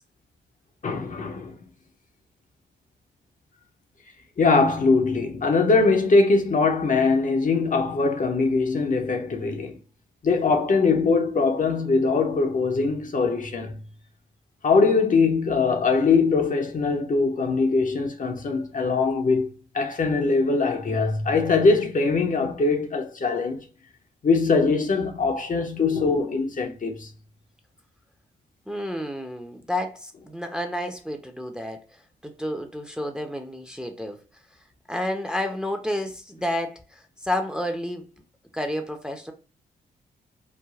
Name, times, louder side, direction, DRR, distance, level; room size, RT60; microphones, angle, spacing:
voice 1, 0.8-1.6 4.4-9.8 10.2-13.8 14.6-23.6 24.2-27.1, left 4 dB, 40° left, 0.6 m, -22 dB
voice 2, 28.7-31.8 32.2-34.2 34.9-38.0 38.5-39.3, left 1 dB, 5° right, 0.6 m, -30 dB
3.2 x 2.2 x 2.3 m
supercardioid pair, 45°, 21 cm